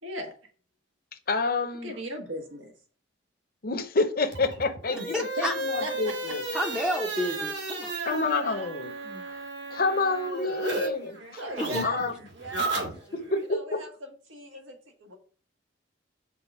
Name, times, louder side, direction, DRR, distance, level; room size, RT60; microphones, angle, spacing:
voice 1, 0.0-0.3 1.8-2.7 4.9-5.5 5.8-6.4 8.2-8.9 11.1-12.9 13.5-15.1, equal, 85° right, 3 dB, 1.5 m, -38 dB
voice 2, 1.3-1.9 3.6-6.4 8.0-8.9 9.7-11.2 11.8-12.1 13.3-13.8, left 3 dB, 50° left, 9 dB, 0.8 m, -28 dB
sound 1, 4.3-10.9 11.2-13.4, right 2 dB, 60° right, 1.8 m, -34 dB
voice 3, 4.9-5.5 6.5-7.9 9.0-9.2 11.6-11.8, equal, 5° right, 1 dB, 0.6 m, -31 dB
5.7 x 3.9 x 5.5 m, 0.43 s
head